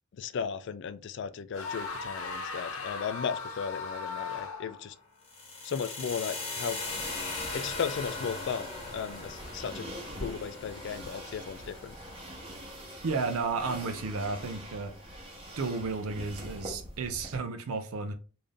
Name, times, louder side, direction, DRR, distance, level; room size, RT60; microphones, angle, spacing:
voice 1, 0.1-5.0 5.6-6.8 7.5-9.9 10.2-11.9, left 6 dB, 55° left, 0.3 m, -35 dB
sound 1, 1.5-4.9, left 4 dB, 80° left, 0.8 m, -37 dB
sound 2, 5.2-13.3, left 3 dB, 30° left, 1.1 m, -40 dB
sound 3, 6.8-17.4, equal, 25° right, 1.0 m, -44 dB
voice 2, 13.0-14.9 15.6-18.1, right 4 dB, 80° right, 0.5 m, -33 dB
3.3 x 2.6 x 3.7 m
head